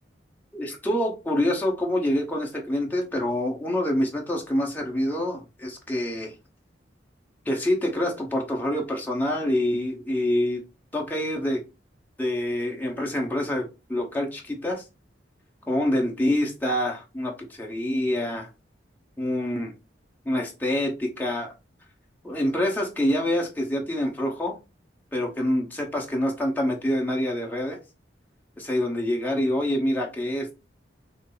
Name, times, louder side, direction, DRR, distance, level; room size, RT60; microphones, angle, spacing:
voice 1, 0.5-6.3 7.4-10.6 10.9-11.6 12.2-14.8 15.7-18.5 19.2-19.7 20.2-21.5 22.2-24.6 25.1-27.8 28.6-30.5, left 1 dB, 10° left, -1 dB, 1.1 m, -26 dB
6.2 x 2.1 x 4.0 m, 0.28 s
head